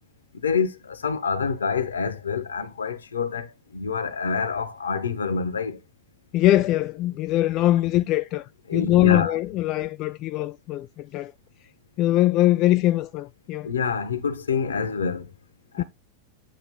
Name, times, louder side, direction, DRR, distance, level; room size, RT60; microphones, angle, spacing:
voice 1, 0.3-5.8 8.7-9.4 13.6-15.3 15.7-15.8, left 5 dB, 70° left, 1.0 m, -27 dB
voice 2, 6.3-11.3 12.0-13.7 15.8-15.9, left 15 dB, 40° left, 0.3 m, -22 dB
8.8 x 3.0 x 5.3 m
figure-of-eight pair, 90°, 0 cm